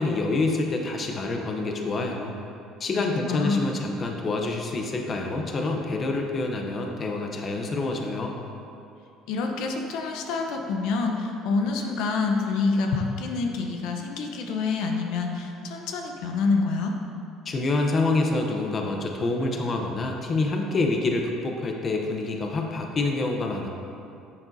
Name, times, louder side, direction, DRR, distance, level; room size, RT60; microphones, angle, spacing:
voice 1, 0.0-2.3 2.8-8.3 17.4-23.7, left 2 dB, 35° left, 2 dB, 0.7 m, -27 dB
voice 2, 2.9-3.7 9.3-16.9, left 4 dB, 75° left, 2 dB, 0.8 m, -27 dB
9.7 x 7.1 x 2.7 m, 2.6 s
cardioid pair, 125°, 0 cm